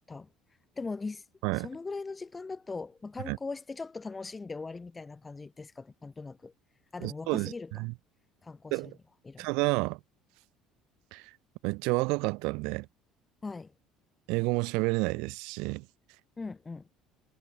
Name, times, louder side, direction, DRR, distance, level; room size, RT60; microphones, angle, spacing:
voice 1, 0.8-1.3 1.5-6.5 6.9-7.8 8.4-8.9 9.2-9.5 13.4-13.7 16.4-16.9, left 3 dB, 20° left, 3.9 m, -40 dB
voice 2, 7.0-7.9 8.7-8.9 9.4-10.0 11.1-11.3 11.6-12.9 14.3-15.8, right 27 dB, 75° right, 1.5 m, -30 dB
supercardioid pair, 80°, 0 cm